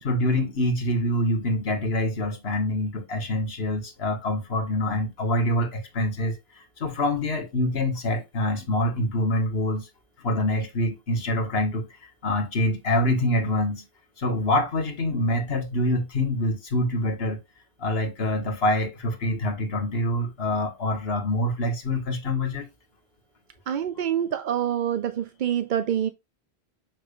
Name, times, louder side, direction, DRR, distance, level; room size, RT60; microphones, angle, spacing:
voice 1, 0.0-9.9 10.2-11.9 12.2-13.8 14.2-17.4 17.8-22.7, left 1 dB, 65° left, 1.7 m, -25 dB
voice 2, 23.7-26.1, right 9 dB, 55° right, 0.6 m, -26 dB
6.7 x 6.1 x 2.4 m
omnidirectional pair, 1.1 m